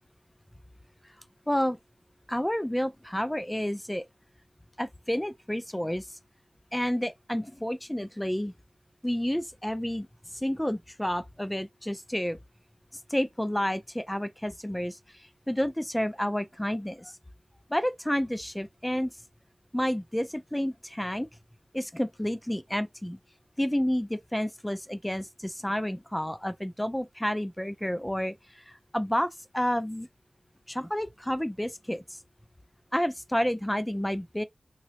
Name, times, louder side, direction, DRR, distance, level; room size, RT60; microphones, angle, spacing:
voice 1, 1.5-1.8 2.3-4.0 4.8-6.2 6.7-8.5 9.0-10.1 10.3-12.4 13.1-17.2 17.7-19.1 19.7-21.3 21.7-23.2 23.6-30.1 30.7-32.2 32.9-34.4, equal, 10° left, 0.4 m, -30 dB
3.0 x 2.8 x 2.8 m
wide cardioid pair, 70°, 0 cm